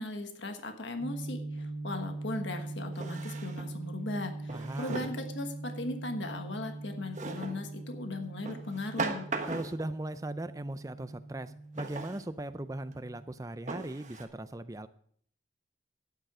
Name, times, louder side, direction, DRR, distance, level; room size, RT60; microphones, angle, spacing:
voice 1, 0.0-9.3, left 2 dB, 75° left, 6 dB, 1.4 m, -38 dB
sound 1, 1.0-13.2, right 2 dB, 65° right, 4.0 m, -42 dB
Drawer open or close, 1.6-1.7 2.9-3.8 4.5-5.3 7.1-7.6 8.4-9.9 11.8-12.2 12.9-13.0 13.7-14.2, right 3 dB, 40° right, 1.4 m, -38 dB
voice 2, 4.5-5.1 9.5-14.9, right 1 dB, 20° right, 12 dB, 0.5 m, -39 dB
12.0 x 9.1 x 4.9 m, 0.62 s
head